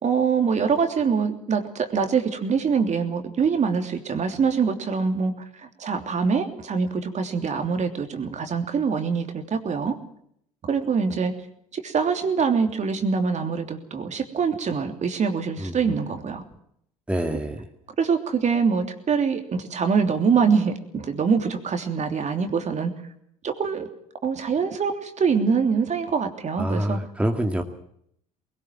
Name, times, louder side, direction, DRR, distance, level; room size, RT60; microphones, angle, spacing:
voice 1, 0.0-5.3 5.6-10.0 10.6-11.3 11.7-16.4 18.0-22.9 23.4-23.9 24.2-27.0, right 5 dB, 40° right, 6 dB, 3.2 m, -24 dB
voice 2, 17.1-17.6 26.6-27.6, right 1 dB, 5° right, 4 dB, 2.2 m, -25 dB
20.5 x 19.0 x 7.6 m, 0.70 s
hypercardioid pair, 65°, 18 cm